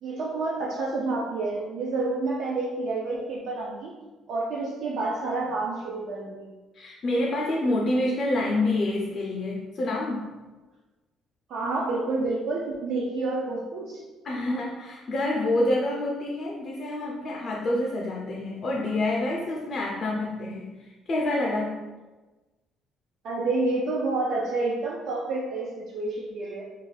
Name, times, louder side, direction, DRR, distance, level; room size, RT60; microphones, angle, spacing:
voice 1, 0.0-3.9 4.3-6.5 11.5-14.0 23.2-26.6, right 3 dB, 65° right, -4 dB, 0.3 m, -29 dB
voice 2, 6.7-10.3 14.2-21.8, left 1 dB, 35° left, -3 dB, 0.3 m, -27 dB
2.3 x 2.2 x 3.1 m, 1.2 s
cardioid pair, 145°, 0 cm